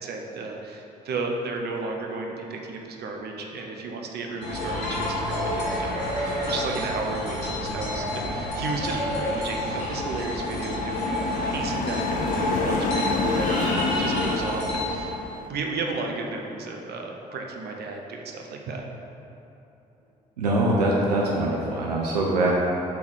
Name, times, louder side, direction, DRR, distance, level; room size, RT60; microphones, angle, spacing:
voice 1, 0.0-11.1 11.4-15.2 15.5-18.8, right 3 dB, 55° right, 1 dB, 0.7 m, -33 dB
sound 1, 4.4-14.9, left 1 dB, 80° left, 1.1 m, -29 dB
sound 2, 8.1-15.5, left 4 dB, 40° left, 0.5 m, -30 dB
voice 2, 20.4-22.5, right 1 dB, 85° right, -3 dB, 0.5 m, -23 dB
5.9 x 3.6 x 4.7 m, 2.9 s
figure-of-eight pair, 45°, 20 cm